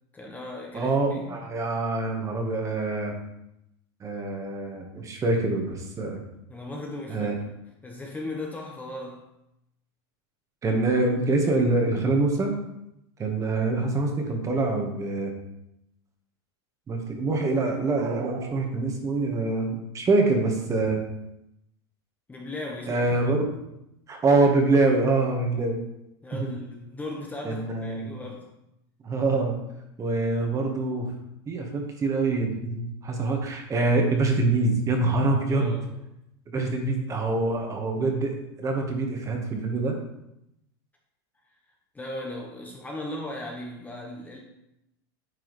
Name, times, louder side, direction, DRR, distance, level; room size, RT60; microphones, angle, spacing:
voice 1, 0.1-1.4 6.5-7.5 7.8-9.3 22.3-23.0 26.2-28.5 35.5-36.0 36.6-36.7 41.9-44.4, left 1 dB, 10° left, 0 dB, 0.9 m, -37 dB
voice 2, 0.7-3.2 4.0-6.2 7.1-7.3 10.6-12.6 13.2-15.3 16.9-21.0 22.9-23.4 24.1-25.8 26.4-26.5 27.4-28.1 29.0-29.6 30.0-31.1 31.5-35.7 36.5-40.0, right 3 dB, 25° right, 3 dB, 1.3 m, -25 dB
sound 1, 17.7-19.3, right 9 dB, 50° right, 0.6 m, -42 dB
9.3 x 4.7 x 3.1 m, 0.85 s
supercardioid pair, 125°, 13 cm